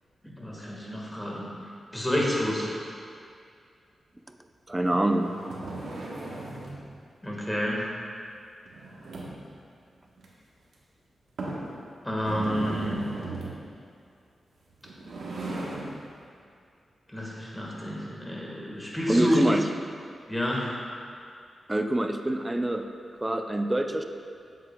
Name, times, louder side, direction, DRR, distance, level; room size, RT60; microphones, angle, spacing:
voice 1, 0.2-1.5 1.9-2.7 7.2-7.8 12.0-13.1 17.1-19.4 20.3-20.7, left 1 dB, 10° left, -4 dB, 1.5 m, -29 dB
voice 2, 4.7-5.3 19.1-19.6 21.7-22.8 23.2-24.0, right 1 dB, 15° right, 5 dB, 0.4 m, -25 dB
sound 1, 4.7-6.9 8.7-9.5 10.2-10.3 10.7-10.8 11.4-11.7 12.2-13.6 14.7-16.0, right 2 dB, 85° right, 1.1 m, -36 dB
8.0 x 7.6 x 2.2 m, 2.3 s
cardioid pair, 85°, 0 cm